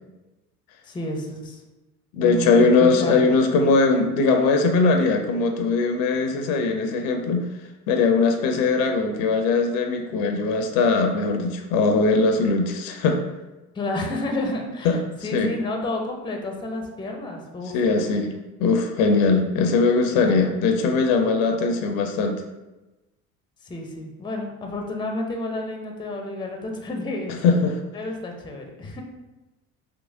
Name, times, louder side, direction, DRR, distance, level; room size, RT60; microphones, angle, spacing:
voice 1, 0.8-1.6 2.2-3.2 13.7-17.8 19.3-19.4 20.2-20.5 23.6-27.4 27.9-29.0, left 1 dB, 10° left, 2 dB, 0.5 m, -30 dB
voice 2, 2.1-7.5 7.9-13.2 14.8-15.5 17.7-18.3 18.6-22.4 27.4-27.8, left 4 dB, 60° left, 4 dB, 0.6 m, -20 dB
3.6 x 2.8 x 2.6 m, 1.1 s
hypercardioid pair, 65°, 42 cm